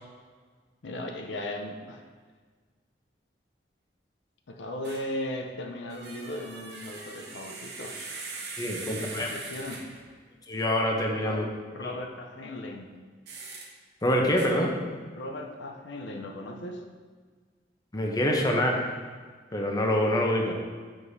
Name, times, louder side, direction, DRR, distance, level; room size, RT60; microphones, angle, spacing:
voice 1, 0.8-2.1 4.5-8.3 8.9-9.9 11.2-11.5 11.7-12.9 15.2-16.8, left 1 dB, 75° left, 3 dB, 0.5 m, -37 dB
sound 1, 4.8-5.1 5.9-10.1 13.3-13.7 14.4-14.5, right 3 dB, 65° right, 0.9 m, -41 dB
voice 2, 8.6-9.3 10.5-11.4 14.0-14.7 17.9-18.8 19.5-20.5, left 1 dB, 20° left, 0 dB, 0.7 m, -25 dB
7.5 x 4.9 x 2.7 m, 1.6 s
head